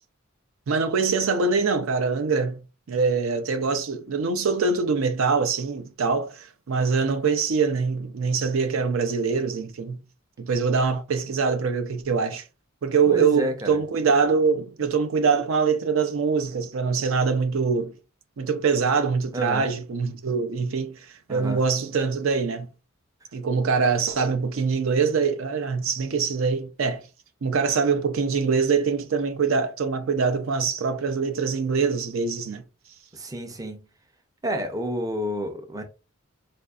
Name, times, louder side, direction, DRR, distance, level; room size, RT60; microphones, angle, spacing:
voice 1, 0.7-2.6 2.9-10.0 10.4-12.5 12.8-17.9 18.4-20.9 21.3-22.7 23.3-27.0 27.4-32.6, right 5 dB, 70° right, 0.5 m, -24 dB
voice 2, 13.1-13.8 19.3-19.7 21.3-21.6 33.1-33.9 34.4-35.8, equal, 15° right, 0.5 m, -30 dB
4.2 x 2.5 x 2.3 m
head